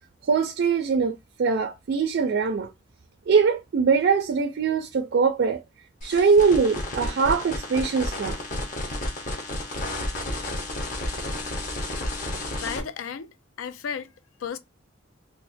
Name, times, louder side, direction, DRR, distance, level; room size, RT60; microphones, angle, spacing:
voice 1, 0.3-2.7 3.3-5.6 6.0-8.4, right 5 dB, 60° right, 0.4 m, -22 dB
sound 1, 6.0-12.8, left 1 dB, 40° left, 0.9 m, -31 dB
voice 2, 12.5-14.1 14.4-14.6, left 7 dB, 80° left, 0.4 m, -34 dB
4.2 x 2.1 x 2.6 m
head